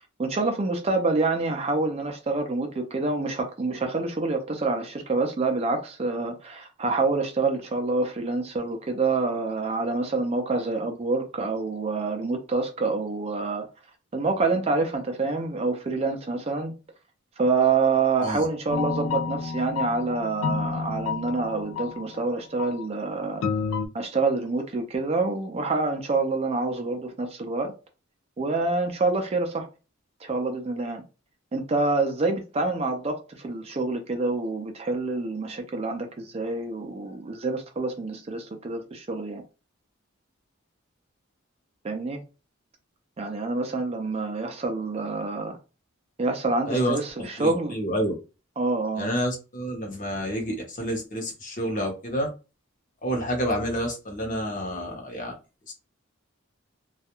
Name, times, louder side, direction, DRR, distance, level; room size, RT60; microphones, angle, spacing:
voice 1, 0.2-13.7 14.1-16.7 17.4-23.4 23.9-27.7 28.4-29.7 30.2-31.0 31.5-39.4 41.8-42.2 43.2-45.6 46.2-47.7 48.6-49.1, right 3 dB, 30° right, 0.4 m, -27 dB
sound 1, 18.7-22.2 22.6-22.8 23.4-23.9, left 5 dB, 90° left, 0.4 m, -30 dB
voice 2, 46.7-48.1 49.0-52.3 53.0-55.3, equal, 40° left, 0.8 m, -29 dB
2.3 x 2.1 x 2.8 m
head